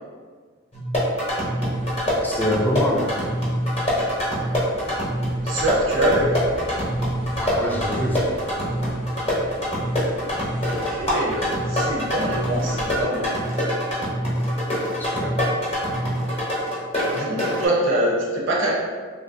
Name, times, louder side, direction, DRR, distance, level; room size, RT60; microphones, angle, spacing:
sound 1, 0.7-17.7, equal, 30° left, 0.8 m, -25 dB
sound 2, 1.7-13.0, left 1 dB, 70° left, 0.6 m, -39 dB
voice 1, 2.2-3.1 7.4-8.3 14.9-15.3, left 1 dB, 10° left, -2 dB, 0.4 m, -25 dB
voice 2, 5.4-6.3 10.6-13.3 17.1-18.7, right 1 dB, 75° right, -4 dB, 0.6 m, -24 dB
2.9 x 2.5 x 2.5 m, 1.5 s
head